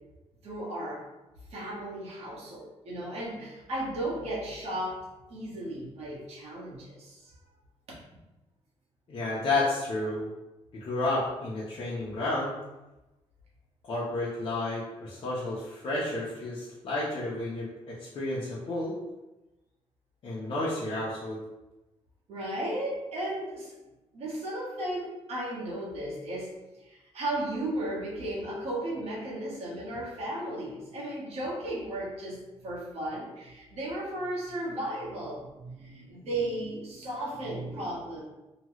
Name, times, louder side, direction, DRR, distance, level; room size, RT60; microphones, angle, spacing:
voice 1, 0.4-1.0 1.5-7.3 22.3-23.8 24.1-38.2, right 1 dB, 70° right, -6 dB, 1.2 m, -35 dB
voice 2, 9.1-10.3 10.7-12.5 13.8-19.0 20.2-21.4, left 2 dB, 55° left, -7 dB, 0.7 m, -31 dB
2.9 x 2.3 x 3.0 m, 1.0 s
cardioid pair, 120°, 11 cm